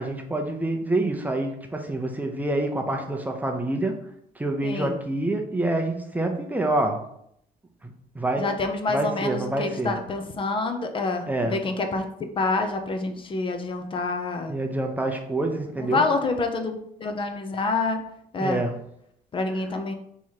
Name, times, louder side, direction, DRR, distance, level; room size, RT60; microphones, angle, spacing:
voice 1, 0.0-4.0 4.4-7.0 7.8-8.4 8.9-9.9 11.3-11.6 14.5-16.0 18.4-18.7, right 2 dB, 10° right, 3 dB, 0.6 m, -27 dB
voice 2, 4.6-5.0 8.4-12.1 12.4-14.6 15.8-18.0 18.3-18.6 19.3-19.9, left 3 dB, 30° left, 6 dB, 0.6 m, -27 dB
3.5 x 3.1 x 4.4 m, 0.73 s
cardioid pair, 110°, 17 cm